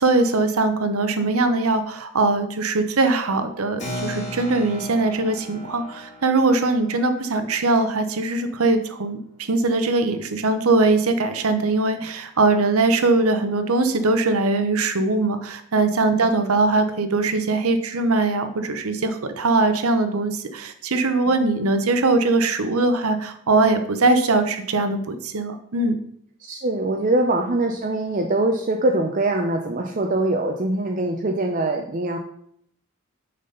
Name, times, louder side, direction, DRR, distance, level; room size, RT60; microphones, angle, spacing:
voice 1, 0.0-26.0, right 3 dB, 80° right, 8 dB, 0.8 m, -21 dB
Keyboard (musical), 3.8-9.8, equal, 30° left, 2.8 m, -38 dB
voice 2, 26.4-32.2, right 2 dB, 35° right, 2 dB, 0.5 m, -23 dB
6.6 x 4.1 x 5.4 m, 0.67 s
head